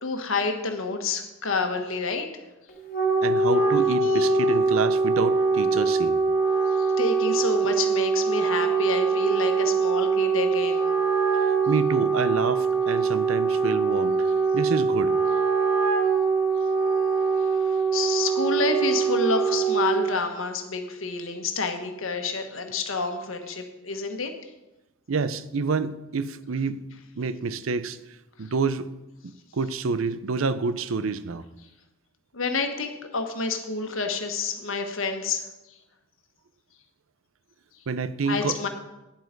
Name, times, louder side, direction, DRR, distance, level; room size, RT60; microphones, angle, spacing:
voice 1, 0.0-2.3 4.0-4.5 6.7-10.8 17.6-24.3 28.4-28.5 32.3-35.4 38.3-38.7, left 4 dB, 75° left, 5 dB, 1.4 m, -29 dB
Wind instrument woodwind instrument, 2.7-20.2, right 5 dB, 50° left, 1.9 m, -23 dB
voice 2, 3.2-6.2 11.7-14.3 14.5-15.2 25.1-26.8 27.2-28.0 28.4-28.9 29.2-31.4 37.9-38.7, right 4 dB, 80° right, 14 dB, 0.6 m, -28 dB
10.5 x 7.7 x 5.2 m, 1.0 s
head